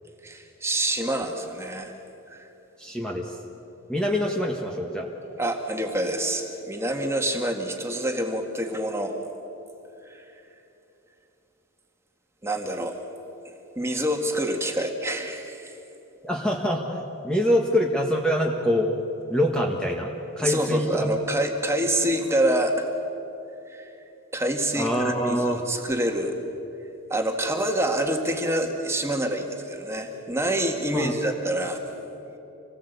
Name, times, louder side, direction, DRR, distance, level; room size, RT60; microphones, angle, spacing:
voice 1, 0.2-1.9 2.3-2.5 5.4-9.2 10.1-10.3 12.4-13.0 13.4-15.8 20.4-22.9 23.7-23.9 24.3-26.4 27.1-31.8, right 1 dB, 15° right, 3 dB, 1.9 m, -27 dB
voice 2, 2.8-3.4 3.9-5.1 16.2-18.9 19.3-20.9 24.7-25.6 30.9-31.1, equal, 5° left, -1 dB, 1.5 m, -25 dB
27.0 x 19.0 x 8.3 m, 3.0 s
head